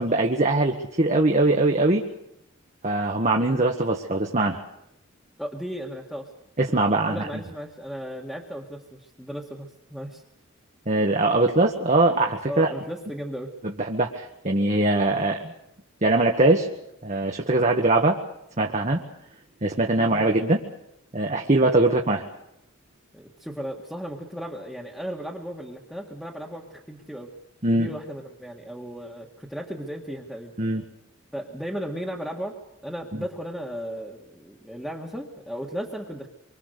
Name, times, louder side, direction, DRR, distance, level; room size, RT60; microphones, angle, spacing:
voice 1, 0.0-2.0 2.8-4.6 6.6-7.3 10.9-12.7 13.8-15.5 16.0-16.7 17.0-18.2 18.6-19.0 19.6-20.6 21.1-22.3 27.6-27.9 30.6-30.8 33.1-33.2, right 2 dB, 35° right, 1 dB, 1.5 m, -22 dB
voice 2, 5.4-6.3 7.0-10.2 12.5-13.5 23.1-27.3 27.7-30.5 31.3-36.3, equal, ahead, -2 dB, 1.9 m, -35 dB
26.0 x 24.5 x 6.7 m, 0.79 s
head